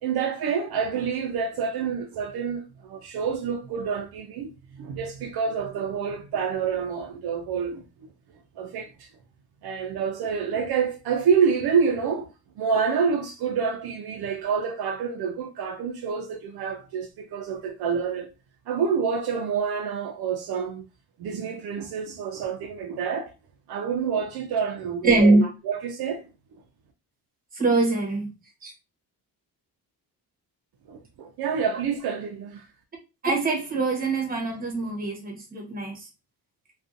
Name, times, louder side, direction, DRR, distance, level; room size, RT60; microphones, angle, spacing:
voice 1, 0.0-4.5 4.8-7.8 8.6-9.1 9.6-12.3 12.6-18.3 18.7-20.8 21.2-23.3 23.7-26.3 30.9-32.6, right 6 dB, 70° right, 0.5 m, -27 dB
voice 2, 25.0-25.5 27.6-28.3 28.6-28.7 33.2-36.1, right 2 dB, 20° right, 0.9 m, -23 dB
2.5 x 2.3 x 2.5 m
cardioid pair, 155°, 39 cm